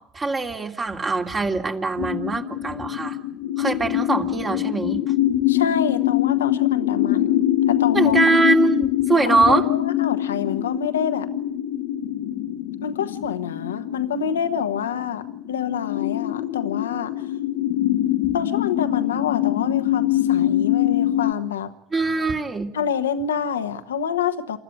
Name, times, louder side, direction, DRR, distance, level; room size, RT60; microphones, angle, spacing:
voice 1, 0.1-3.2 3.6-5.1 7.9-9.7 21.9-22.7, right 3 dB, 30° right, 2 dB, 2.7 m, -22 dB
sound 1, 2.0-21.3, left 13 dB, 70° left, 1.1 m, -24 dB
voice 2, 5.5-8.2 9.3-11.3 12.8-17.3 18.3-21.7 22.7-24.6, left 7 dB, 85° left, 8 dB, 1.2 m, -27 dB
28.5 x 13.0 x 9.3 m, 0.73 s
hypercardioid pair, 75°, 0 cm